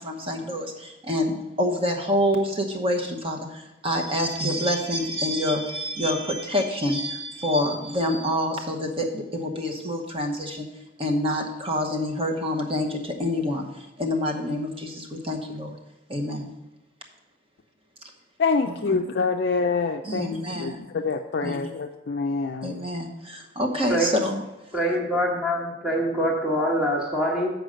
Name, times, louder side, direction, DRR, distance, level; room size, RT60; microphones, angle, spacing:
voice 1, 0.0-10.7 11.0-15.8 16.1-16.5 18.8-19.1 20.0-20.9 21.4-21.6 22.6-24.4, left 1 dB, 30° right, 3 dB, 0.9 m, -27 dB
voice 2, 18.4-22.7, left 4 dB, 55° left, 3 dB, 0.4 m, -26 dB
voice 3, 24.7-27.5, equal, 5° right, -4 dB, 1.2 m, -24 dB
7.8 x 4.8 x 6.2 m, 0.96 s
head